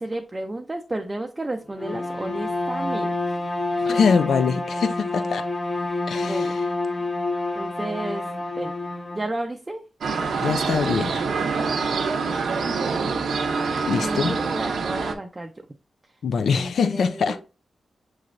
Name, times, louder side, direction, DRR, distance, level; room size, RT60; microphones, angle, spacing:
voice 1, 0.0-3.4 3.8-4.0 6.2-6.5 7.6-8.2 8.6-8.7 9.1-9.8 12.5-13.3 14.0-15.5 16.5-17.4, right 2 dB, 20° right, 0.4 m, -32 dB
Bowed string instrument, 1.7-9.3, left 2 dB, 30° left, 0.6 m, -28 dB
voice 2, 3.8-5.4 6.1-6.7 10.4-11.3 13.9-14.4 16.2-17.4, left 5 dB, 75° left, 0.3 m, -23 dB
sound 1, 10.0-15.1, right 4 dB, 75° right, 0.6 m, -25 dB
6.8 x 3.2 x 2.5 m
wide cardioid pair, 125°, 0 cm